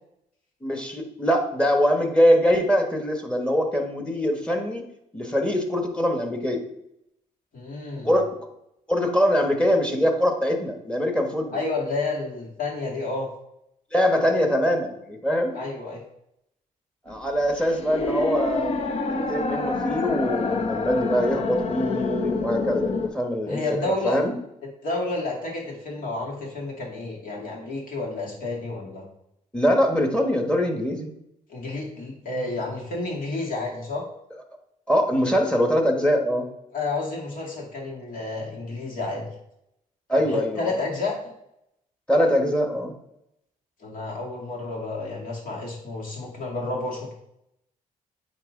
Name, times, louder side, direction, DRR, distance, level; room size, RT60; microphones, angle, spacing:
voice 1, 0.6-4.8 5.1-6.6 8.0-8.3 8.9-11.6 13.9-15.5 17.1-18.7 19.1-24.3 29.5-31.1 34.9-36.5 40.1-40.7 42.1-42.9, equal, 5° left, 4 dB, 1.4 m, -23 dB
voice 2, 7.5-8.1 11.5-13.3 15.5-16.0 23.5-24.2 24.8-29.0 31.5-34.0 36.7-39.2 40.1-41.2 43.8-47.1, left 3 dB, 60° left, -2 dB, 2.2 m, -30 dB
sound 1, 17.1-23.1, left 3 dB, 40° left, 0.9 m, -27 dB
8.9 x 3.0 x 3.8 m, 0.80 s
supercardioid pair, 70°, 15 cm